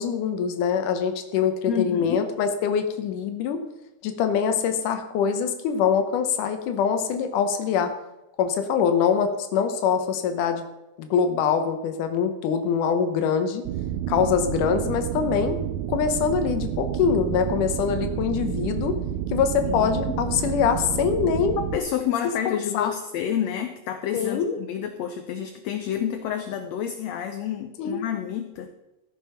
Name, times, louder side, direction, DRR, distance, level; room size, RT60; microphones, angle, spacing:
voice 1, 0.0-3.6 4.0-7.9 8.4-10.6 11.0-13.6 14.1-15.6 15.9-18.9 19.3-21.6 22.7-22.9 24.1-24.6 27.8-28.0, left 7 dB, 90° left, 7 dB, 2.6 m, -24 dB
voice 2, 1.7-2.3 19.7-20.2 21.7-28.7, left 9 dB, 70° left, 7 dB, 1.8 m, -29 dB
sound 1, 13.7-21.8, right 10 dB, 80° right, 1.9 m, -29 dB
15.5 x 6.7 x 5.6 m, 0.96 s
omnidirectional pair, 3.5 m